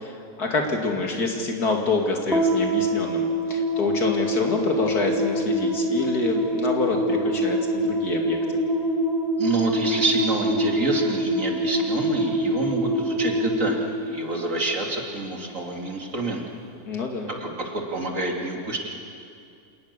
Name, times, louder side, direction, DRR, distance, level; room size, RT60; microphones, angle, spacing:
voice 1, 0.0-8.4 16.9-17.3, left 3 dB, 90° left, 2 dB, 3.1 m, -27 dB
sound 1, 2.3-14.8, equal, ahead, 3.0 m, -25 dB
voice 2, 9.4-16.4 17.4-18.9, right 2 dB, 55° right, 1 dB, 2.9 m, -27 dB
27.0 x 19.0 x 6.9 m, 2.5 s
omnidirectional pair, 1.6 m